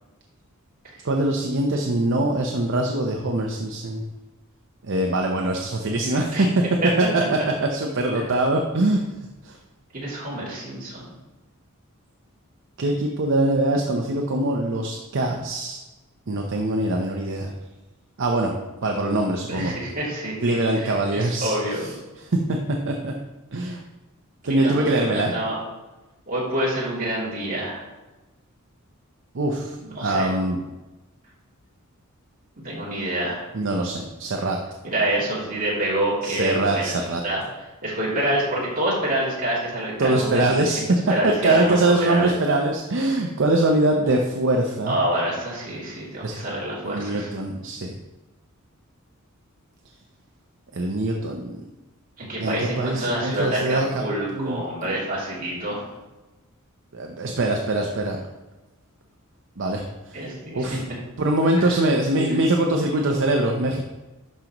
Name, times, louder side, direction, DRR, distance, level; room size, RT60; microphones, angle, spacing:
voice 1, 1.0-4.0 4.8-6.5 7.0-9.0 9.4-9.6 12.8-15.8 16.3-17.5 18.2-18.5 18.8-19.7 20.4-21.9 22.2-22.6 22.9-23.1 23.5-23.8 24.4-25.3 29.3-30.6 33.5-34.6 36.2-37.2 40.0-41.0 41.2-45.0 46.2-46.3 46.8-47.9 50.7-51.6 52.4-54.0 54.3-55.1 56.9-58.2 59.6-60.8 61.2-63.8, right 2 dB, 60° right, 1 dB, 0.7 m, -23 dB
voice 2, 9.9-11.0 19.5-20.3 20.7-21.9 24.6-25.6 26.3-27.8 29.8-30.3 32.6-33.5 34.8-36.9 37.2-37.4 37.8-40.8 41.1-42.3 44.9-47.3 52.2-55.8 60.1-60.7 61.6-61.7 62.1-62.3, right 1 dB, 40° right, -7 dB, 2.7 m, -27 dB
12.0 x 5.1 x 3.0 m, 1.1 s
head